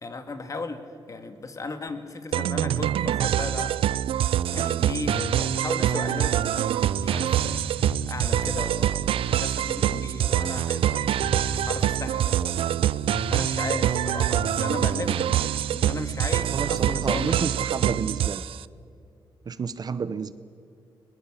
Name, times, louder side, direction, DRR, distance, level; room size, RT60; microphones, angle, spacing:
voice 1, 0.0-3.8 4.5-7.6 8.1-11.1 11.6-12.8 13.3-18.0, left 3 dB, 35° left, 8 dB, 2.0 m, -36 dB
sound 1, 2.3-18.6, right 11 dB, 80° right, 0.4 m, -25 dB
sound 2, 5.1-5.6 6.6-6.7 7.0-8.6 10.9-11.0 11.2-11.9 13.1-14.9, left 1 dB, 10° left, 0.9 m, -36 dB
voice 2, 16.5-18.4 19.5-20.3, right 6 dB, 45° right, 15 dB, 0.8 m, -30 dB
21.0 x 20.0 x 7.4 m, 2.5 s
cardioid pair, 105°, 9 cm